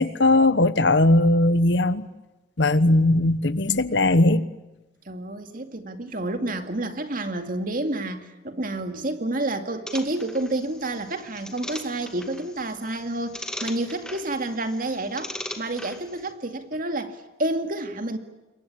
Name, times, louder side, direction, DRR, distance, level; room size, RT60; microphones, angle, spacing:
voice 1, 0.0-2.1 2.6-4.5, left 2 dB, 65° left, 14 dB, 1.1 m, -19 dB
voice 2, 5.1-18.2, right 2 dB, 45° right, 7 dB, 2.3 m, -29 dB
sound 1, 9.9-16.3, left 1 dB, 5° left, 2.2 m, -40 dB
27.5 x 22.5 x 8.6 m, 1.1 s
head